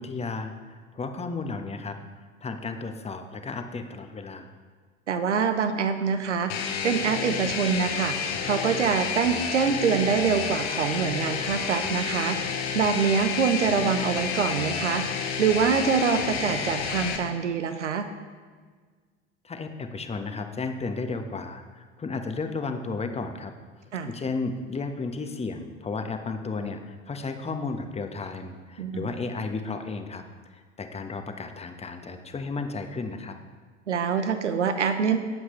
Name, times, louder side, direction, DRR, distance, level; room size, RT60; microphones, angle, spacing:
voice 1, 0.0-4.5 19.4-33.3, left 4 dB, 15° left, 6 dB, 1.2 m, -34 dB
voice 2, 5.1-8.2 8.4-12.4 12.7-15.1 15.4-18.1 23.9-24.1 28.8-29.1 33.9-35.2, right 6 dB, 80° right, 9 dB, 0.9 m, -25 dB
sound 1, 6.5-17.2, left 6 dB, 60° left, 1.6 m, -30 dB
19.5 x 8.0 x 3.2 m, 1.5 s
figure-of-eight pair, 75°, 35 cm